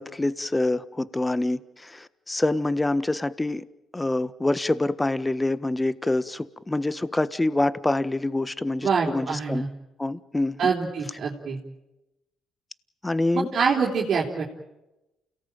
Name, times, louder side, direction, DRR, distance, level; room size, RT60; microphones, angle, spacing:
voice 1, 0.0-3.6 3.9-9.7 10.0-10.7 13.0-13.5, left 2 dB, 15° left, 1.4 m, -26 dB
voice 2, 8.8-9.7 10.6-11.6 13.3-14.4, right 5 dB, 60° right, 3.8 m, -25 dB
29.0 x 18.0 x 9.1 m
supercardioid pair, 65°, 0 cm